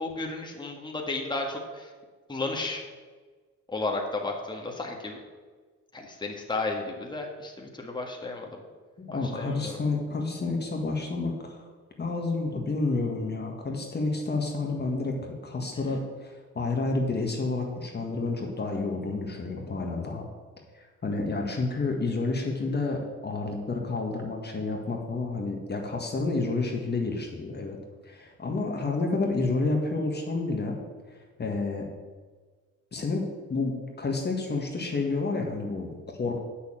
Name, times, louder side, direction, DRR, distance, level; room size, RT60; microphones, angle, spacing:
voice 1, 0.0-1.9 2.3-2.8 3.7-5.2 5.9-8.6 9.1-9.8, left 2 dB, 15° left, 0 dB, 1.7 m, -33 dB
voice 2, 9.0-11.7 12.0-20.3 20.7-27.8 28.0-30.8 31.1-31.9 32.9-36.4, left 3 dB, 35° left, 1 dB, 1.7 m, -30 dB
8.1 x 6.6 x 7.5 m, 1.4 s
cardioid pair, 90°, 30 cm